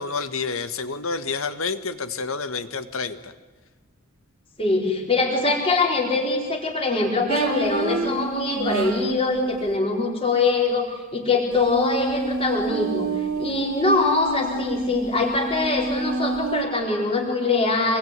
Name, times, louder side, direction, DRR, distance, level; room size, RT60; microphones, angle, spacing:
voice 1, 0.0-3.3, left 4 dB, 75° left, 12 dB, 1.7 m, -29 dB
voice 2, 4.6-13.1 13.4-18.0, left 3 dB, 25° left, 0 dB, 4.6 m, -23 dB
sound 1, 7.3-9.5 11.6-16.6, right 2 dB, 85° right, 2.8 m, -28 dB
27.0 x 22.0 x 9.8 m, 1.4 s
head